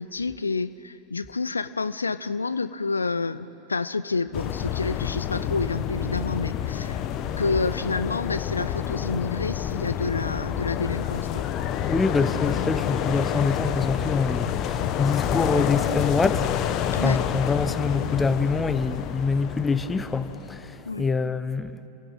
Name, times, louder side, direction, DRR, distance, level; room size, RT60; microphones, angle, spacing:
voice 1, 0.0-7.1 7.4-11.5 16.9-17.2 20.9-21.0, left 4 dB, 75° left, 0.5 m, -29 dB
sound 1, 4.3-20.9, left 10 dB, 35° left, 1.1 m, -28 dB
voice 2, 11.8-21.8, left 4 dB, 15° left, 1.0 m, -25 dB
28.5 x 17.0 x 8.9 m
figure-of-eight pair, 90°, 0 cm